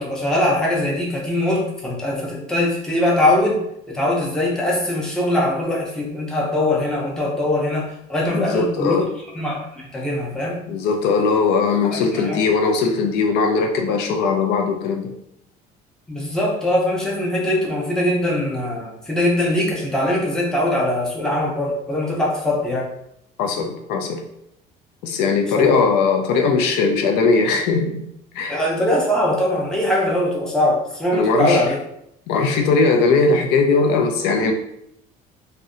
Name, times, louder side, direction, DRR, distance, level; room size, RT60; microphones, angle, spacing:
voice 1, 0.0-9.0 9.3-10.6 11.9-12.4 16.1-22.9 25.5-25.8 28.5-31.8, left 1 dB, 5° left, -4 dB, 0.5 m, -21 dB
voice 2, 8.3-9.0 10.7-15.1 23.4-24.2 25.0-28.1 28.3-28.6 31.1-31.7 32.3-34.5, left 4 dB, 80° left, 3 dB, 0.4 m, -19 dB
2.7 x 2.1 x 2.4 m, 0.76 s
cardioid pair, 150°, 17 cm